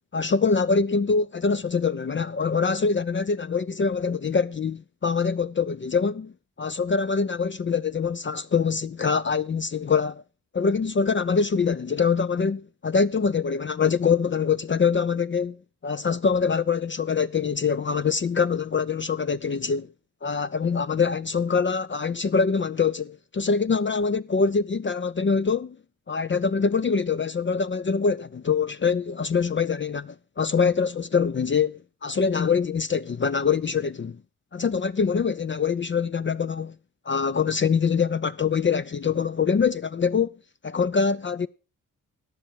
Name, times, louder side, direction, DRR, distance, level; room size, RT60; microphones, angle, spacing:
voice 1, 0.1-6.3 6.6-10.2 10.5-15.6 15.8-19.9 20.2-25.8 26.1-34.2 34.5-36.7 37.1-40.4 40.6-41.5, left 5 dB, 30° left, 0.6 m, -24 dB
14.5 x 9.4 x 4.6 m
supercardioid pair, 45°, 36 cm